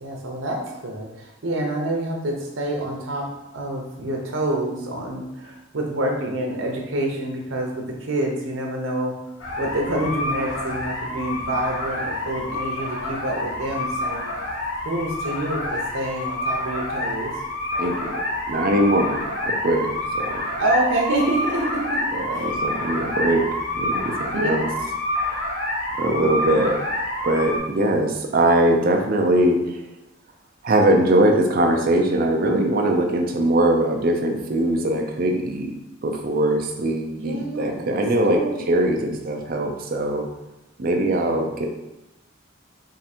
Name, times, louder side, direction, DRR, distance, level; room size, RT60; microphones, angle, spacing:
voice 1, 0.0-9.1 9.6-14.2 14.8-17.3 20.6-22.1 22.3-22.5 23.3-23.4 24.3-24.8 26.5-26.7 37.2-39.1 41.0-41.4, right 1 dB, 85° right, 1 dB, 0.9 m, -27 dB
sound 1, 9.4-27.6, left 1 dB, 85° left, 1.2 m, -28 dB
voice 2, 17.8-20.4 22.1-23.5 23.7-24.7 26.0-26.8 27.2-29.8 30.6-35.7 36.0-40.3 40.8-41.7, right 1 dB, 50° right, 3 dB, 0.5 m, -21 dB
3.7 x 2.6 x 4.3 m, 0.95 s
head